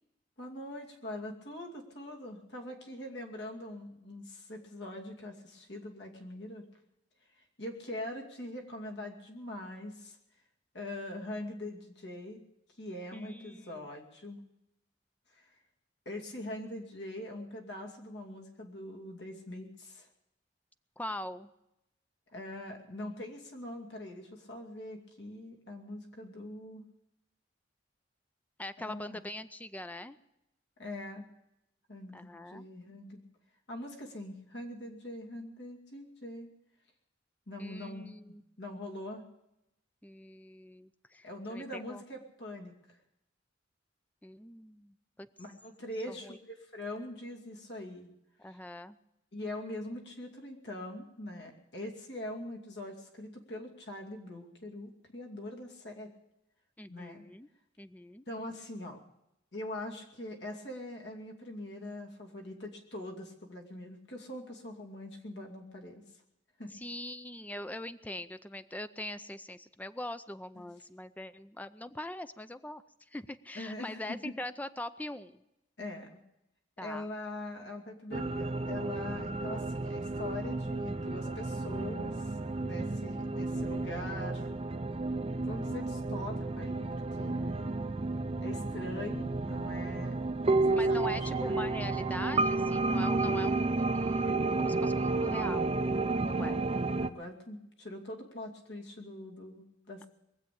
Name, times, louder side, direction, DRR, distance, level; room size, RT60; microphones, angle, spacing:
voice 1, 0.4-6.7 7.3-10.2 10.7-12.4 12.8-14.4 15.3-15.5 16.1-20.1 22.3-26.8 28.8-29.2 30.8-31.2 31.9-33.2 33.7-36.5 37.5-38.1 38.6-39.2 41.2-43.0 45.4-48.1 48.5-48.6 49.3-56.1 56.9-57.2 58.3-59.0 59.5-66.0 66.6-66.7 73.5-74.3 75.8-76.2 76.8-84.5 85.4-87.7 88.4-90.2 90.5-91.6 97.0-100.1, left 1 dB, 70° left, 1 dB, 2.6 m, -43 dB
voice 2, 13.1-13.9 21.0-21.5 28.6-30.2 32.1-32.7 37.6-38.4 40.0-42.0 44.2-45.3 46.1-46.4 48.4-49.0 56.8-57.5 57.8-58.2 66.7-75.4 76.8-77.1 90.7-95.7 96.2-96.6, left 1 dB, 10° left, 12 dB, 0.5 m, -42 dB
sound 1, 78.1-97.1, right 3 dB, 35° right, 0.6 m, -31 dB
21.5 x 7.8 x 8.5 m, 0.87 s
head